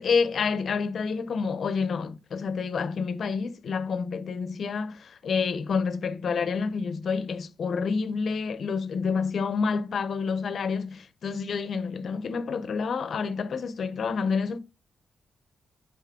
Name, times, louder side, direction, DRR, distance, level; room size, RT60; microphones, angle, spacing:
voice 1, 0.0-14.6, left 5 dB, 55° left, 0.6 m, -28 dB
9.3 x 3.9 x 3.7 m
wide cardioid pair, 165°, 0 cm